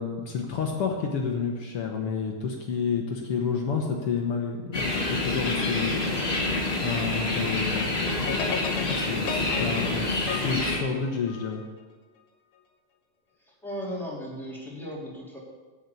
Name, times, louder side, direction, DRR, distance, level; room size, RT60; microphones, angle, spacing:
voice 1, 0.0-8.4 8.8-11.6, left 5 dB, 60° left, 1 dB, 1.6 m, -30 dB
sound 1, 4.7-10.8, left 2 dB, 25° left, 1.4 m, -27 dB
sound 2, 8.3-11.7, left 7 dB, 80° left, 2.6 m, -35 dB
voice 2, 13.5-15.4, equal, ahead, -6 dB, 2.8 m, -36 dB
8.7 x 7.2 x 8.4 m, 1.3 s
omnidirectional pair, 3.5 m